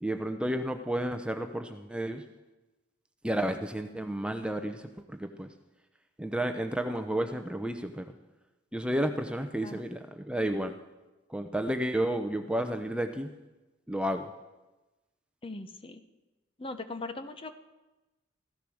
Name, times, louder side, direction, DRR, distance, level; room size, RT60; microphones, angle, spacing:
voice 1, 0.0-2.3 3.2-5.5 6.2-8.1 8.7-10.8 11.3-13.3 13.9-14.3, right 1 dB, 5° right, 6 dB, 0.7 m, -31 dB
voice 2, 15.4-16.0 16.6-17.5, left 2 dB, 30° left, 9 dB, 0.9 m, -39 dB
15.5 x 14.0 x 6.3 m, 1.1 s
head